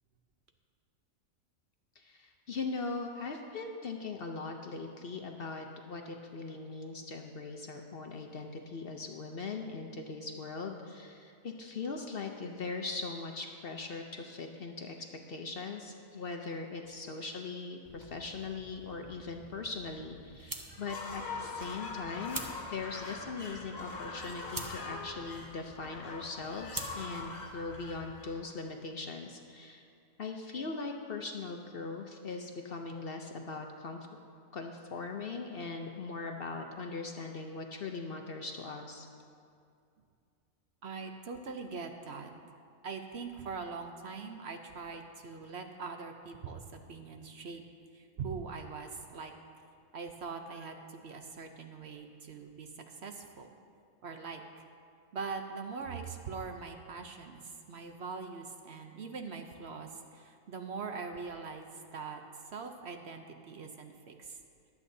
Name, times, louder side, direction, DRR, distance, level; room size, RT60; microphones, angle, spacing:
voice 1, 2.0-15.0 15.3-22.4 22.7-29.8 30.2-34.0 34.5-39.1, left 4 dB, 55° left, 3 dB, 0.7 m, -40 dB
sound 1, 17.8-28.2, right 2 dB, 20° right, 0.7 m, -47 dB
sound 2, 20.7-28.8, left 3 dB, 70° left, 1.4 m, -43 dB
voice 2, 40.8-42.3 42.8-47.6 47.9-49.3 49.9-53.5 54.0-54.4 55.1-61.7 61.9-62.2 62.5-64.4, right 5 dB, 60° right, 5 dB, 0.8 m, -42 dB
23.0 x 8.4 x 2.7 m, 2.4 s
omnidirectional pair, 1.4 m